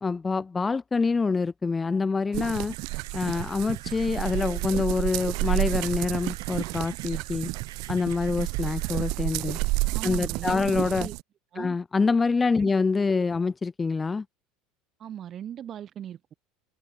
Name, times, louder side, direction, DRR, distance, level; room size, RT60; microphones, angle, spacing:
voice 1, 0.0-2.7 3.1-7.5 7.9-9.6 10.0-11.1 11.6-14.2, left 4 dB, 20° left, 0.8 m, -26 dB
sound 1, 2.3-11.2, right 25 dB, 65° right, 0.3 m, -30 dB
sound 2, 2.7-9.1, right 15 dB, 90° right, 4.1 m, -49 dB
voice 2, 9.9-11.1 11.5-11.7 12.6-12.7 15.0-16.3, right 10 dB, 45° right, 1.0 m, -39 dB
open air
supercardioid pair, 100°, 0 cm